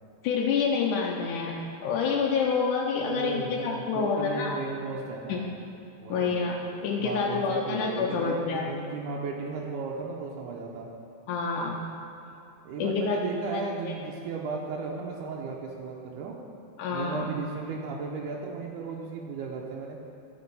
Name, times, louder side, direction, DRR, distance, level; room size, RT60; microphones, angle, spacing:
voice 1, 0.2-4.6 5.3-5.4 6.1-6.6 6.8-8.6 11.3-11.9 12.8-13.2 13.5-13.9 16.8-17.3, left 5 dB, 80° left, -2 dB, 2.1 m, -28 dB
voice 2, 3.0-5.5 6.0-6.3 7.0-10.9 12.6-16.4 16.9-20.0, right 4 dB, 85° right, -2 dB, 2.2 m, -35 dB
13.0 x 5.1 x 5.4 m, 2.7 s
omnidirectional pair, 3.5 m